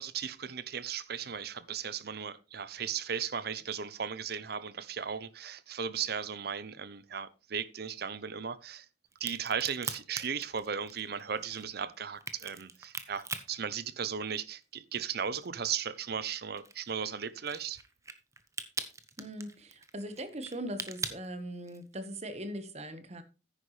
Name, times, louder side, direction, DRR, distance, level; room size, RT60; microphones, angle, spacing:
voice 1, 0.0-8.8 9.2-17.8, right 7 dB, 60° right, 0.7 m, -36 dB
Crack, 9.1-14.6 15.0-22.0, right 4 dB, 15° right, 0.9 m, -42 dB
voice 2, 19.2-23.2, right 1 dB, 40° right, 1.4 m, -40 dB
10.0 x 9.8 x 3.3 m
head